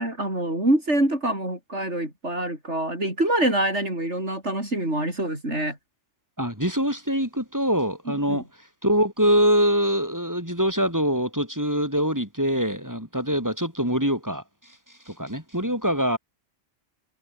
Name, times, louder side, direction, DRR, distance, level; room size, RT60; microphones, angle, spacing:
voice 1, 0.0-5.8 8.3-8.4, right 1 dB, 65° right, 8.0 m, -25 dB
voice 2, 6.4-8.5 8.8-14.8 15.1-16.2, equal, 15° right, 6.9 m, -24 dB
omnidirectional pair, 1.3 m